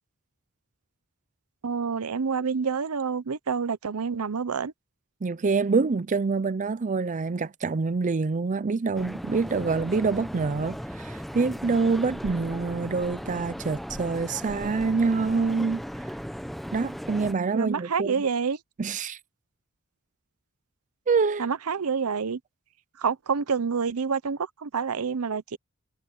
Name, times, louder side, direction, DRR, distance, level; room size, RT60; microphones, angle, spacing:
voice 1, 1.6-4.7 17.5-18.6 21.4-22.4 23.0-25.6, right 5 dB, 75° right, 0.7 m, -28 dB
voice 2, 5.2-15.8 16.7-18.2 18.8-19.2 21.1-21.5, right 4 dB, 35° right, 0.5 m, -26 dB
sound 1, 8.9-17.3, equal, ahead, 0.8 m, -37 dB
head